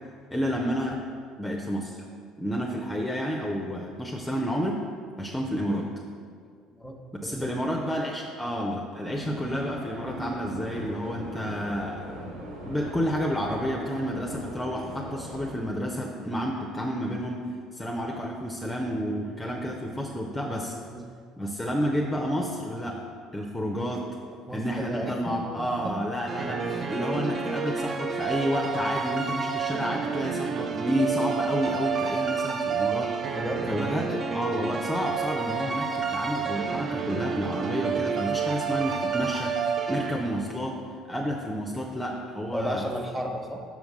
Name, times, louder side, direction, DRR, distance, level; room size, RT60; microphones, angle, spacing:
voice 1, 0.3-1.0 1.4-2.0 2.4-4.8 5.2-5.9 7.2-12.0 12.3-12.4 12.6-17.5 17.7-20.7 21.4-23.0 23.3-24.0 24.5-33.4 33.7-40.8 41.1-42.8, equal, 10° left, 0 dB, 0.6 m, -30 dB
sound 1, 9.1-15.5, right 1 dB, 65° right, 1.1 m, -40 dB
voice 2, 24.5-26.0 26.6-26.9 33.3-34.0 41.1-41.3 42.5-43.6, equal, 10° right, 2 dB, 1.0 m, -34 dB
sound 2, 26.3-40.6, right 6 dB, 40° right, 0.5 m, -29 dB
5.7 x 4.7 x 5.4 m, 2.1 s
figure-of-eight pair, 60°, 0 cm